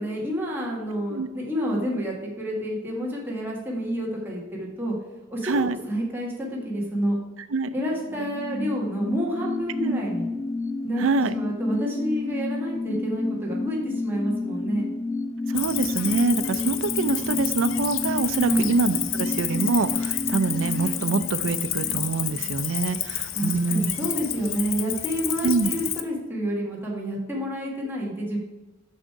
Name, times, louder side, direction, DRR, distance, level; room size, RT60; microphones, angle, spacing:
voice 1, 0.0-5.0 5.3-7.2 7.7-10.3 10.8-11.0 11.3-14.9 18.4-18.7 23.3-28.4, equal, 10° right, -3 dB, 1.5 m, -29 dB
voice 2, 5.4-5.8 7.5-7.7 9.8-10.0 11.0-11.3 15.5-23.8 25.4-25.7, right 3 dB, 90° right, 14 dB, 0.5 m, -25 dB
sound 1, 7.9-23.0 23.3-23.4, left 2 dB, 15° left, 0.5 m, -31 dB
Cricket, 15.6-26.0, left 12 dB, 85° left, 0.6 m, -30 dB
6.4 x 6.3 x 4.6 m, 1.1 s
head